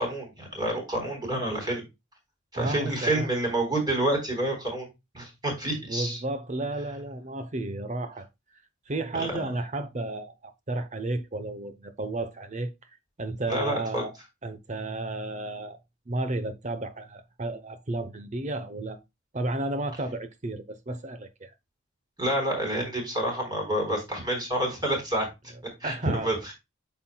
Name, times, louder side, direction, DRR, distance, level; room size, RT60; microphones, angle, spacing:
voice 1, 0.0-1.8 2.5-4.9 5.1-6.2 9.1-9.4 13.5-14.0 22.2-25.3 25.8-26.5, right 1 dB, 20° right, 4.0 m, -28 dB
voice 2, 2.6-3.3 5.8-8.3 8.9-12.7 13.2-14.1 14.4-15.8 16.1-19.0 19.3-21.5 25.8-26.3, right 2 dB, 35° right, 0.8 m, -32 dB
8.4 x 5.8 x 2.2 m
head